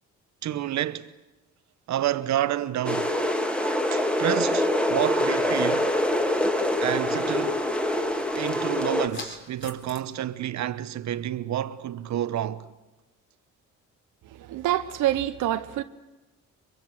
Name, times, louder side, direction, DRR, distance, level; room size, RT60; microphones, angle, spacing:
voice 1, 0.4-1.1 1.9-3.1 3.9-5.9 6.8-7.6 8.4-12.7, right 12 dB, 65° right, 1.0 m, -29 dB
sound 1, 2.8-9.1, left 1 dB, 5° left, 2.2 m, -25 dB
sound 2, 4.9-10.0, left 3 dB, 40° left, 4.0 m, -48 dB
voice 2, 14.4-15.8, right 13 dB, 85° right, 1.0 m, -26 dB
23.5 x 23.0 x 7.9 m
cardioid pair, 90°, 30 cm